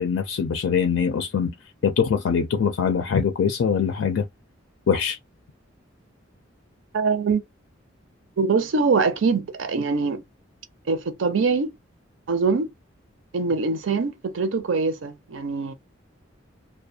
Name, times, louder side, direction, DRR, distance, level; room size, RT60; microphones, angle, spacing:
voice 1, 0.0-1.5 1.8-4.3 4.9-5.2, left 6 dB, 75° left, 0.4 m, -23 dB
voice 2, 6.9-7.4 8.4-10.2 10.9-11.7 12.3-12.7 13.3-15.7, right 4 dB, 75° right, 0.6 m, -23 dB
2.4 x 2.2 x 2.6 m
head